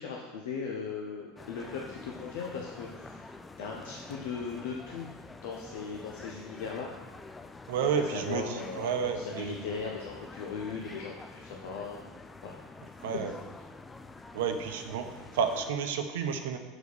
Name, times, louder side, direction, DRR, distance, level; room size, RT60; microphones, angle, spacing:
voice 1, 0.0-3.3 3.6-5.1 5.4-6.9 8.1-12.0 12.4-12.6, left 5 dB, 60° left, -1 dB, 0.8 m, -38 dB
sound 1, 1.4-15.7, left 3 dB, 15° left, 0.4 m, -47 dB
voice 2, 7.7-9.6 13.0-13.4 14.3-16.6, right 6 dB, 60° right, 7 dB, 0.7 m, -31 dB
6.7 x 4.6 x 6.2 m, 1.2 s
figure-of-eight pair, 75°, 0 cm